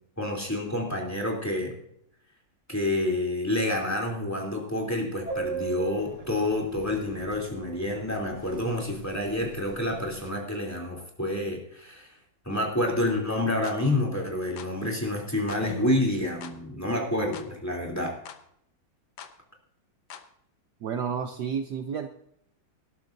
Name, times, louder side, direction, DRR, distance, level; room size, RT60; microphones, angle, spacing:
voice 1, 0.2-1.8 2.7-12.1 12.4-18.1, left 1 dB, 10° left, 0 dB, 3.1 m, -28 dB
Subway metro underground, 5.3-7.4 7.7-7.8 8.1-8.3 8.6-9.0 9.3-10.3, right 6 dB, 20° right, 1.2 m, -36 dB
sound 1, 13.6-13.8 14.6-14.8 15.5-15.7 16.4-16.6 17.3-17.5 18.3-18.4 19.2-19.4 20.1-20.3, left 8 dB, 75° left, 1.7 m, -44 dB
voice 2, 20.8-22.1, right 7 dB, 65° right, 6 dB, 1.3 m, -31 dB
19.5 x 12.0 x 2.7 m, 0.72 s
omnidirectional pair, 2.2 m